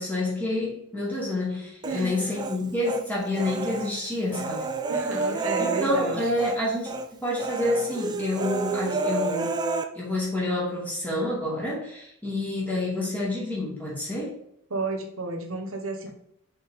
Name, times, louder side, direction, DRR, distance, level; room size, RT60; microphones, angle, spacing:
voice 1, 0.0-4.7 5.6-6.9 7.2-9.5 9.9-14.4, left 1 dB, 10° left, -6 dB, 2.3 m, -28 dB
Human voice, 1.8-3.0 3.4-6.6 6.8-7.1 7.4-9.8, right 3 dB, 20° right, 0.4 m, -30 dB
voice 2, 1.8-2.2 4.9-6.2 14.7-16.1, right 3 dB, 70° right, 4 dB, 1.2 m, -31 dB
6.0 x 4.3 x 3.5 m, 0.73 s
head